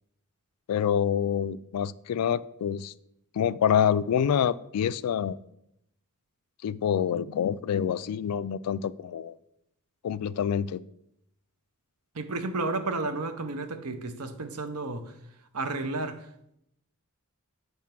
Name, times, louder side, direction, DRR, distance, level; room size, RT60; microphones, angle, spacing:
voice 1, 0.7-2.9 3.3-5.4 6.6-9.3 10.0-10.8, left 8 dB, 85° left, 0.3 m, -26 dB
voice 2, 12.1-15.2 15.5-16.3, right 3 dB, 80° right, 0.8 m, -32 dB
9.5 x 3.6 x 5.9 m
head